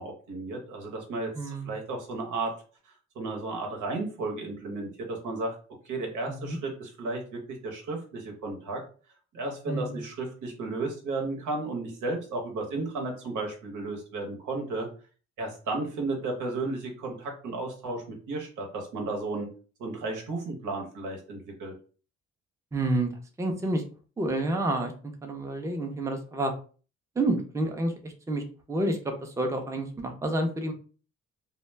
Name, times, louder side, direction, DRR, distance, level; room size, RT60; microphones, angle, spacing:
voice 1, 0.0-2.5 2.8-5.6 5.8-8.8 9.3-14.9 15.4-19.5 19.8-21.7, right 3 dB, 85° right, 2 dB, 0.9 m, -34 dB
voice 2, 1.4-1.7 6.3-6.6 9.7-10.0 22.7-23.1 23.4-23.8 24.2-24.9 25.2-26.5 27.2-28.4 28.7-30.7, right 1 dB, 10° right, 4 dB, 0.5 m, -29 dB
2.1 x 2.1 x 3.2 m, 0.39 s
cardioid pair, 90°, 30 cm